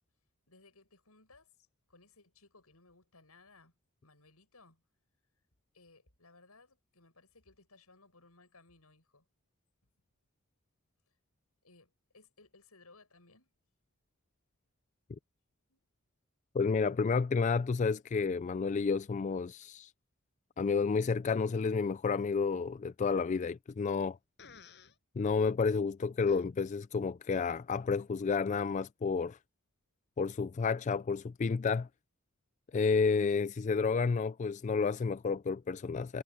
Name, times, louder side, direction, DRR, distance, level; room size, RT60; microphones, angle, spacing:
voice 1, 0.5-1.5 1.9-3.7 4.0-4.8 5.7-9.2 11.6-13.5 15.7-15.8, left 3 dB, 90° left, 7.9 m, -61 dB
voice 2, 16.5-19.9 20.6-24.2 25.2-29.4 30.2-31.9 32.7-36.2, left 5 dB, 35° left, 0.3 m, -30 dB
Fart, 24.4-25.0 26.3-26.4, left 5 dB, 50° left, 7.2 m, -54 dB
head